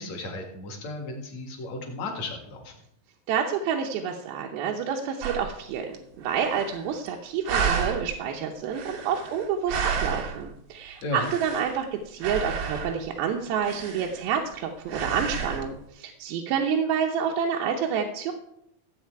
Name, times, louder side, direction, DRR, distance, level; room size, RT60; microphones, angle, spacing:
voice 1, 0.0-2.7 11.0-11.3, left 2 dB, 55° left, 3 dB, 3.0 m, -34 dB
voice 2, 3.3-18.3, right 7 dB, 85° right, 1 dB, 2.9 m, -28 dB
sound 1, 5.2-5.6 5.9-6.0 6.2-7.1 7.5-8.1 8.6-10.5 11.0-11.9 12.2-13.1 13.6-14.5 14.9-15.7, right 6 dB, 65° right, 1.3 m, -31 dB
15.5 x 8.2 x 4.7 m, 0.77 s
omnidirectional pair, 4.3 m